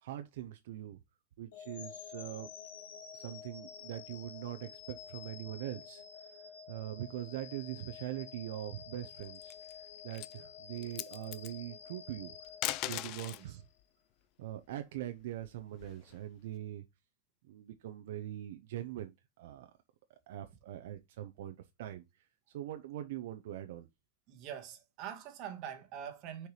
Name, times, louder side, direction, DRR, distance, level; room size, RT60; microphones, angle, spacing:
voice 1, 0.0-1.0 1.4-2.5 3.1-6.0 6.7-12.3 12.8-13.6 14.4-16.8 17.5-19.7 20.1-22.0 22.5-23.9, right 12 dB, 65° right, 0.7 m, -42 dB
sound 1, 1.5-13.6, left 7 dB, 80° left, 2.0 m, -50 dB
sound 2, 9.2-9.7 10.1-10.4 10.8-11.5 12.4-13.5 15.0-16.1, left 16 dB, 35° left, 0.4 m, -39 dB
voice 2, 24.3-26.5, right 9 dB, 35° right, 1.4 m, -44 dB
6.5 x 4.6 x 3.2 m
supercardioid pair, 170°, 0 cm